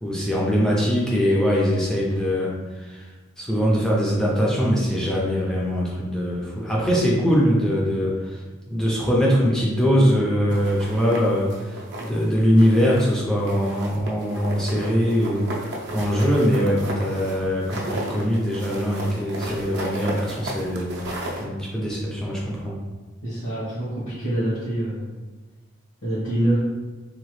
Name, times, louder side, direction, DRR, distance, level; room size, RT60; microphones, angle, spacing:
voice 1, 0.0-3.1 3.4-8.4 8.7-21.0 21.4-22.8, equal, 5° left, -5 dB, 0.4 m, -22 dB
sound 1, 10.5-12.2 12.6-13.2 13.5-21.4, right 1 dB, 50° right, 0.5 m, -34 dB
voice 2, 23.2-25.0 26.0-26.6, right 1 dB, 70° left, -12 dB, 1.2 m, -25 dB
2.8 x 2.3 x 3.1 m, 1.3 s
head